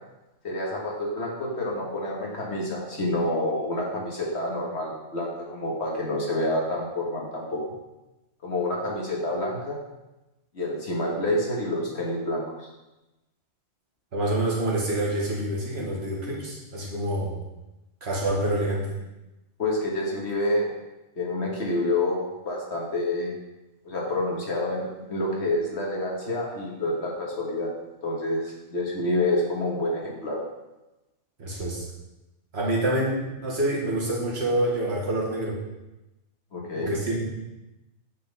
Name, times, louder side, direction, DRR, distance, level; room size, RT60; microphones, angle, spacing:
voice 1, 0.4-7.6 8.4-9.8 10.5-12.7 19.6-20.7 21.2-23.3 23.8-27.7 28.0-30.4 36.5-36.9, left 1 dB, 60° left, -3 dB, 1.7 m, -28 dB
voice 2, 14.1-17.3 18.0-18.9 31.4-31.9 32.5-35.6 36.7-37.3, right 1 dB, 55° right, -4 dB, 1.7 m, -27 dB
8.5 x 3.9 x 4.0 m, 1.0 s
omnidirectional pair, 1.3 m